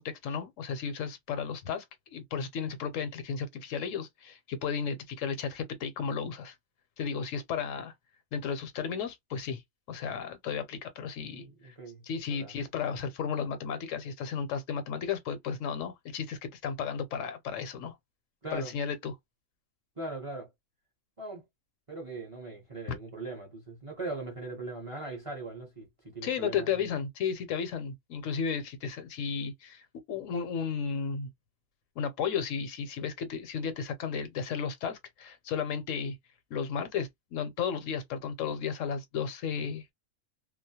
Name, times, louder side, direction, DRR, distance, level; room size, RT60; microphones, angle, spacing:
voice 1, 0.0-1.8 2.1-6.5 7.0-7.9 8.3-9.6 9.9-11.7 12.0-17.9 18.5-19.1 26.2-31.3 32.0-36.2 36.5-39.9, left 6 dB, 75° left, 0.9 m, -34 dB
voice 2, 11.3-12.0 12.3-12.5 18.4-18.7 20.0-20.5 21.2-21.4 21.9-26.8, right 2 dB, 35° right, 0.6 m, -40 dB
2.3 x 2.0 x 2.7 m
omnidirectional pair, 1.4 m